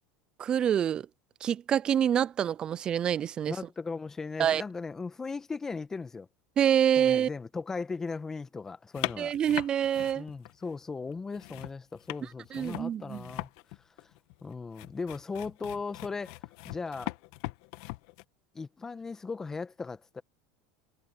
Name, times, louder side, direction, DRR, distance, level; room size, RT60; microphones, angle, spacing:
voice 1, 0.4-1.1 1.4-3.5 4.4-4.6 6.6-7.3 9.2-10.3 12.5-13.3, right 9 dB, 30° right, 0.4 m, -26 dB
voice 2, 3.5-6.3 7.0-9.3 10.1-13.5 14.0-14.1 14.4-16.4 16.6-17.1 18.5-20.2, left 4 dB, 15° left, 1.6 m, -37 dB
sound 1, 8.9-10.8 11.1-18.2, left 22 dB, 70° left, 1.4 m, -40 dB
supercardioid pair, 115°, 3 cm